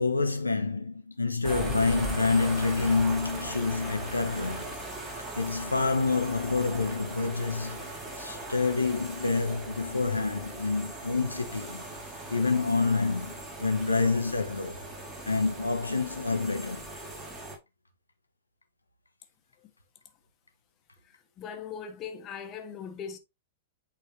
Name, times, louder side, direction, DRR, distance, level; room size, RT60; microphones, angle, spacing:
voice 1, 0.0-4.7 5.3-11.8 12.3-14.9 15.3-16.8, left 4 dB, 85° left, 1.0 m, -28 dB
sound 1, 1.4-17.6, right 1 dB, 15° right, 3.2 m, -39 dB
voice 2, 21.4-23.2, left 7 dB, 30° left, 1.4 m, -39 dB
8.8 x 4.1 x 3.1 m
figure-of-eight pair, 105°, 0 cm